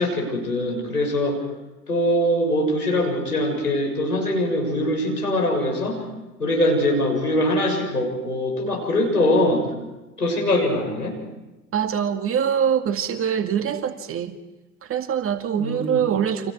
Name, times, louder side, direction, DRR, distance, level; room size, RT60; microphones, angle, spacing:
voice 1, 0.0-1.4 1.9-6.0 6.4-9.7 10.2-11.2 15.6-16.0, left 1 dB, 90° left, 2 dB, 6.5 m, -22 dB
voice 2, 11.7-14.4 14.8-16.5, right 8 dB, 30° right, 7 dB, 2.2 m, -24 dB
30.0 x 26.5 x 4.8 m, 1.1 s
figure-of-eight pair, 85°, 44 cm